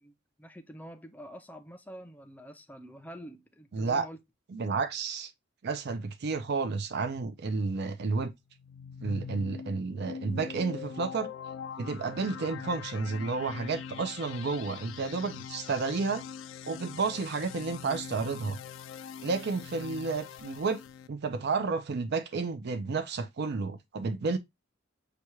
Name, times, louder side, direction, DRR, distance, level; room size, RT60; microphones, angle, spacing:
voice 1, 0.0-4.2, equal, 10° left, 0.5 m, -47 dB
voice 2, 3.7-4.1 4.5-5.3 5.6-8.3 9.0-11.3 11.8-16.2 16.6-18.6 19.2-20.8 21.1-24.4, right 4 dB, 55° right, 0.5 m, -31 dB
sound 1, 8.5-21.1, left 7 dB, 70° left, 0.3 m, -43 dB
6.7 x 2.3 x 3.0 m
head